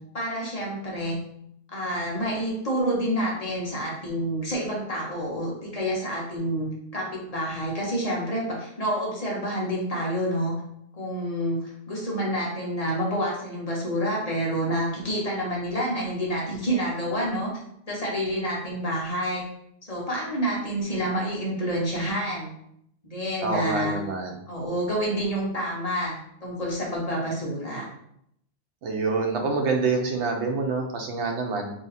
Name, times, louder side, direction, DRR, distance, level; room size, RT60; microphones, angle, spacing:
voice 1, 0.1-1.2 1.7-10.5 10.9-17.5 17.9-19.4 19.9-22.5 23.0-24.0 24.5-27.8, equal, 35° left, -4 dB, 0.9 m, -28 dB
voice 2, 23.4-24.4 28.8-31.7, right 4 dB, 85° right, 3 dB, 1.0 m, -26 dB
2.8 x 2.8 x 4.0 m, 0.73 s
omnidirectional pair, 1.1 m